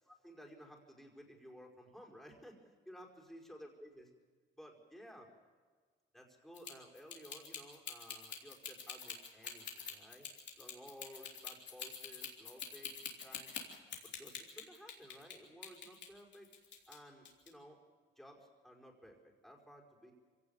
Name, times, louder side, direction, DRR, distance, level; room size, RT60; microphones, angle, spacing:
voice 1, 0.0-4.1 4.6-5.3 6.1-10.3 10.6-13.6 14.0-16.5 16.9-17.8 18.2-20.1, equal, ahead, 0 dB, 5.2 m, -56 dB
sound 1, 6.5-15.4 15.6-17.0 17.3-17.5, left 7 dB, 65° left, 3.8 m, -45 dB
24.0 x 17.0 x 7.2 m, 1.5 s
cardioid pair, 90°, 20 cm